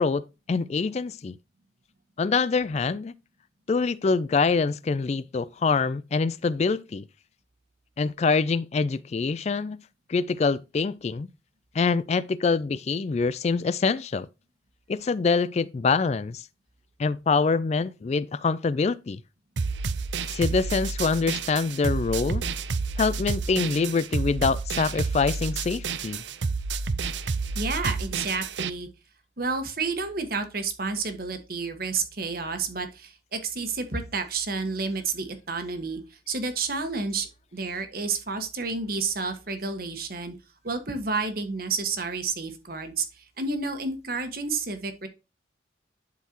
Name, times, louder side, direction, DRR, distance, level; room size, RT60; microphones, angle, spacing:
voice 1, 0.0-1.4 2.2-3.1 3.7-7.0 8.0-9.8 10.1-11.3 11.7-14.3 14.9-16.4 17.0-19.2 20.3-22.4 23.0-26.2, left 4 dB, 35° left, 0.3 m, -25 dB
sound 1, 19.6-28.7, right 4 dB, 80° right, 0.6 m, -30 dB
voice 2, 27.5-28.9 29.4-40.4 40.6-45.1, right 4 dB, 55° right, 1.4 m, -30 dB
11.5 x 4.6 x 2.9 m
head